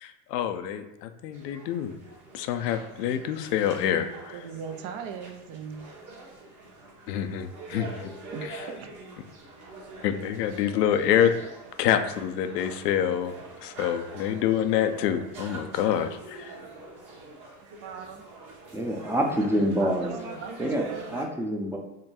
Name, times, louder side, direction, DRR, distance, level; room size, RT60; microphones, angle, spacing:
voice 1, 0.0-1.9 2.3-4.4 7.1-7.9 8.4-8.6 10.0-11.3 11.8-13.3 13.6-16.5, left 9 dB, 85° left, 8 dB, 0.6 m, -26 dB
sound 1, 1.3-21.2, right 3 dB, 40° right, 1.2 m, -44 dB
voice 2, 4.3-5.9 8.3-8.9 17.6-18.2 19.3-21.3, right 6 dB, 55° right, 6 dB, 0.6 m, -40 dB
voice 3, 18.7-20.2 20.6-20.8 21.1-21.8, equal, 5° right, 2 dB, 0.5 m, -26 dB
3.7 x 2.2 x 4.2 m, 0.96 s
hypercardioid pair, 90°, 47 cm